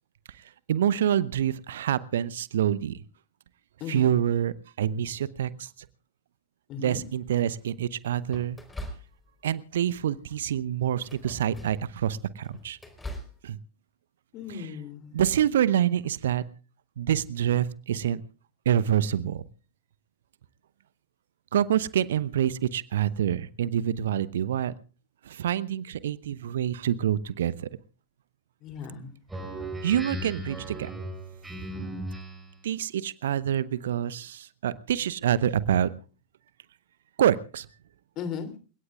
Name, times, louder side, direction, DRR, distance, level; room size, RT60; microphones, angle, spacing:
voice 1, 0.7-3.0 3.9-5.7 6.8-8.6 9.4-12.8 13.4-13.6 14.5-14.7 15.1-16.4 17.0-18.2 18.7-19.4 21.5-24.7 25.2-27.7 29.8-30.9 32.6-35.9 37.2-37.7, right 10 dB, 60° right, 0.8 m, -26 dB
voice 2, 3.8-4.2 6.7-7.0 14.3-15.1 28.6-29.1 38.2-38.5, left 7 dB, 35° left, 3.0 m, -36 dB
sound 1, 6.9-7.4 8.3-9.5 9.9-10.2 10.9-11.9 12.3-13.4, equal, 10° left, 4.1 m, -42 dB
Speech synthesizer, 29.3-32.6, right 1 dB, 10° right, 6.9 m, -37 dB
29.0 x 17.5 x 2.4 m
figure-of-eight pair, 90°, 0 cm